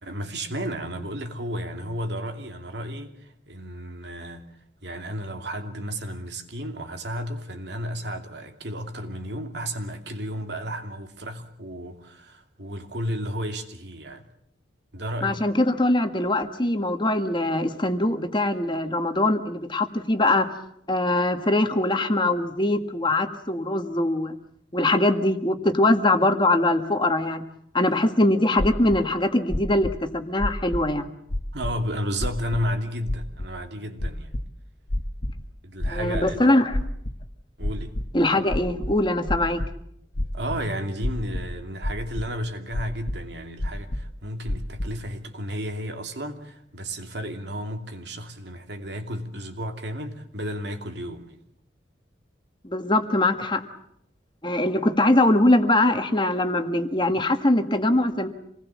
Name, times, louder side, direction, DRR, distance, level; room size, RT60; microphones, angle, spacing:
voice 1, 0.0-4.5 4.8-14.2 14.9-15.5 31.5-34.3 35.6-36.6 37.6-38.0 40.3-51.4, equal, 70° right, 2.7 m, -33 dB
voice 2, 15.2-20.5 20.9-24.4 24.7-27.4 27.7-31.1 35.9-36.8 38.1-39.6 52.6-53.6 54.4-58.3, left 1 dB, 25° left, 1.6 m, -22 dB
sound 1, 28.6-29.0 29.5-29.9 30.4-30.9 31.3-31.7 32.2-32.6 33.1-33.5 34.0-34.4 34.9-35.4 35.8-36.3 36.7-37.2 37.6-38.0 38.5-39.7 40.1-40.6 41.0-41.5 41.8-42.3 42.7-43.2 43.6-44.1 44.5-44.9, left 1 dB, 85° left, 1.6 m, -28 dB
27.5 x 19.5 x 7.4 m
head